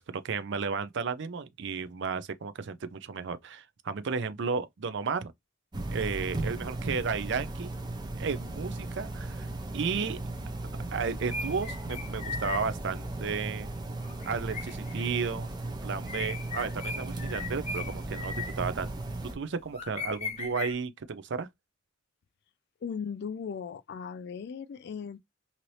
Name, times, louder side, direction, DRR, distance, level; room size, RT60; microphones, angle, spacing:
voice 1, 0.0-5.3 5.9-7.7 8.2-9.5 9.7-10.2 10.9-13.7 14.3-15.5 15.8-18.9 19.3-21.5, right 5 dB, 60° right, 0.5 m, -33 dB
sound 1, 5.7-19.3, right 2 dB, 20° right, 0.6 m, -36 dB
sound 2, 11.3-20.7, left 4 dB, 35° left, 0.8 m, -40 dB
voice 2, 22.8-25.2, left 6 dB, 55° left, 0.3 m, -37 dB
2.8 x 2.7 x 3.1 m
head